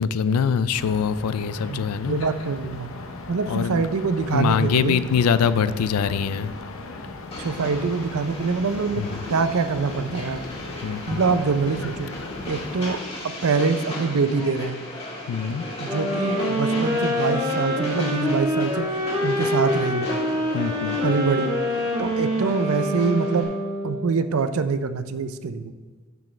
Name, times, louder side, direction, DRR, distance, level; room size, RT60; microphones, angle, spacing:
voice 1, 0.0-2.2 3.5-3.9 4.3-6.5 9.0-9.2 10.8-11.2 15.3-15.7 20.5-21.0, left 6 dB, 90° left, 15 dB, 0.4 m, -23 dB
sound 1, 0.7-13.0, left 2 dB, 65° left, 0.7 m, -38 dB
voice 2, 1.7-2.9 3.3-5.0 7.4-9.0 9.3-10.4 11.1-12.1 12.5-13.0 13.2-14.8 15.8-18.9 19.2-20.1 21.0-21.6 22.0-23.5 23.8-25.7, right 4 dB, 70° right, 11 dB, 0.5 m, -24 dB
Train, 7.3-23.4, left 1 dB, 30° left, 1.7 m, -36 dB
sound 2, 15.9-24.1, left 1 dB, 20° right, 1.2 m, -25 dB
10.5 x 6.2 x 3.2 m, 1.4 s
head